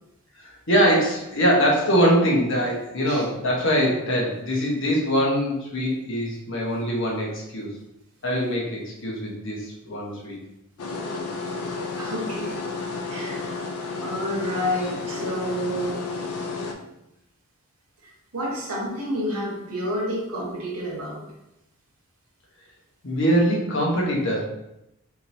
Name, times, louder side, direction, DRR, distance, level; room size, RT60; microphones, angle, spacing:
voice 1, 0.4-7.7 8.2-10.4 23.0-24.4, equal, 55° left, -3 dB, 1.0 m, -23 dB
sound 1, 10.8-16.7, left 4 dB, 85° left, 0.5 m, -31 dB
voice 2, 12.0-12.5 13.1-13.5 14.0-16.0 18.3-21.2, equal, 90° right, -2 dB, 1.1 m, -29 dB
3.6 x 2.9 x 2.6 m, 0.85 s
head